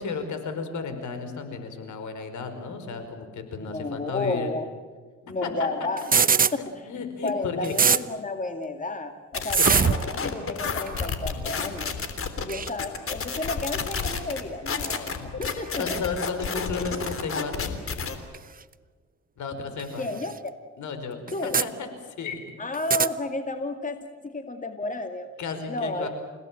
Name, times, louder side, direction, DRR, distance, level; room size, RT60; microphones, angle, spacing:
voice 1, 0.0-4.5 5.4-5.7 6.8-7.7 9.6-9.7 15.8-17.7 19.4-20.1 20.8-21.9 22.2-22.4 25.4-26.1, left 5 dB, 75° left, 8 dB, 5.0 m, -33 dB
voice 2, 3.6-4.7 5.2-6.1 7.2-12.0 12.4-16.0 20.0-20.3 21.3-21.6 22.6-24.0 24.2-25.3 25.7-26.1, left 2 dB, 25° left, 6 dB, 2.3 m, -32 dB
sound 1, 6.0-6.5 7.3-7.4 7.6-8.0 9.5-10.1 10.9-11.1 12.5-12.7 14.0-14.2 15.4-15.5 16.8-16.9 18.3-18.4 19.8-19.9 20.2-20.3 21.3-21.7 22.7-23.1, right 6 dB, 30° right, 0.9 m, -22 dB
sound 2, 9.3-18.2, left 5 dB, 45° left, 3.4 m, -30 dB
29.5 x 17.5 x 9.1 m, 1.5 s
cardioid pair, 90°, 30 cm